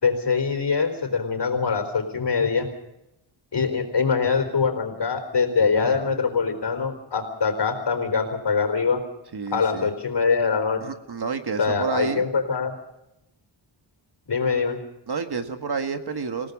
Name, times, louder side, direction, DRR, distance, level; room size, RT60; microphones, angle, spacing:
voice 1, 0.0-2.7 3.5-9.0 9.5-10.8 11.6-12.7 14.3-14.8, left 5 dB, 55° left, 6 dB, 4.3 m, -23 dB
voice 2, 9.3-9.9 10.8-12.2 15.1-16.5, right 5 dB, 50° right, 7 dB, 1.8 m, -29 dB
28.5 x 17.5 x 5.3 m, 0.87 s
wide cardioid pair, 120°, 49 cm